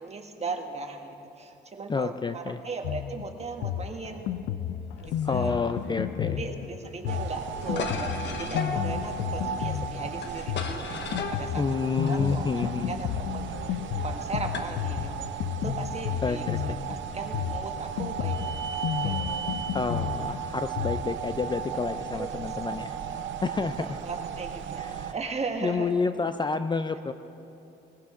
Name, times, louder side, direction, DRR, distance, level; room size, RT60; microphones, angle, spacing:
voice 1, 0.0-4.4 5.0-5.5 6.2-11.6 12.0-15.3 15.6-18.4 19.0-19.7 22.1-22.6 23.8-26.1, right 4 dB, 35° right, 4 dB, 1.4 m, -38 dB
voice 2, 1.9-2.6 5.2-6.4 11.6-12.9 16.2-16.8 19.7-23.0 23.4-24.0 24.8-25.1 25.6-27.1, left 4 dB, 25° left, 10 dB, 0.4 m, -29 dB
Drum kit, 2.8-21.0, left 10 dB, 85° left, 0.5 m, -32 dB
sound 1, 5.0-15.3, left 6 dB, 65° left, 1.0 m, -39 dB
sound 2, 7.1-25.1, right 8 dB, 70° right, 0.7 m, -36 dB
20.5 x 15.0 x 3.7 m, 2.8 s
cardioid pair, 90°, 20 cm